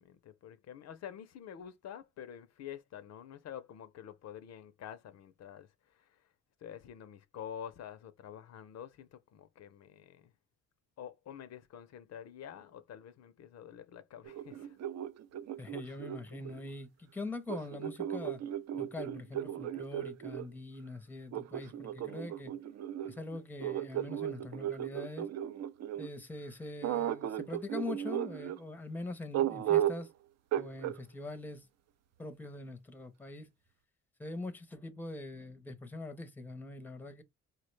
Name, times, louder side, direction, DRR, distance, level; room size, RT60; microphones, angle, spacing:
voice 1, 0.0-6.2 6.6-10.3 11.0-14.8, left 9 dB, 60° left, 0.5 m, -48 dB
sound 1, 14.3-16.7 17.5-20.5 21.3-26.1 26.8-28.6 29.3-30.1 30.5-31.0, right 11 dB, 60° right, 0.5 m, -35 dB
voice 2, 15.6-18.4 18.7-22.5 23.0-25.3 26.0-30.1 30.5-31.7 32.2-33.5 34.2-37.2, left 2 dB, 5° left, 0.6 m, -43 dB
4.4 x 2.1 x 3.1 m
cardioid pair, 90°, 30 cm